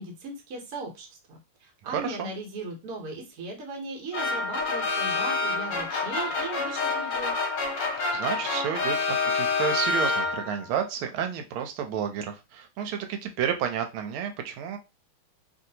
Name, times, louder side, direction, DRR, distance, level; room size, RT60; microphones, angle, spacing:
voice 1, 0.0-7.3, right 2 dB, 55° right, 1 dB, 1.2 m, -38 dB
voice 2, 1.9-2.3 8.1-9.0 9.3-14.8, right 8 dB, 85° right, 6 dB, 1.4 m, -31 dB
Trumpet Fanfare, 4.1-10.7, left 3 dB, 65° left, 1.2 m, -27 dB
3.1 x 2.6 x 2.7 m, 0.26 s
omnidirectional pair, 2.3 m